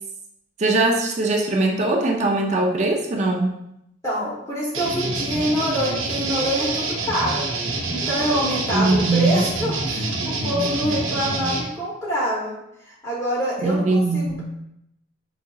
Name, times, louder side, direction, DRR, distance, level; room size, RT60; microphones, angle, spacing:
voice 1, 0.6-3.6 8.7-9.5 13.6-14.4, right 2 dB, 35° right, 1 dB, 0.4 m, -21 dB
voice 2, 4.0-7.4 7.9-12.5 12.9-14.4, equal, 15° left, -7 dB, 0.8 m, -25 dB
sound 1, 4.7-11.6, right 2 dB, 85° right, 0.7 m, -26 dB
4.8 x 2.7 x 2.3 m, 0.79 s
head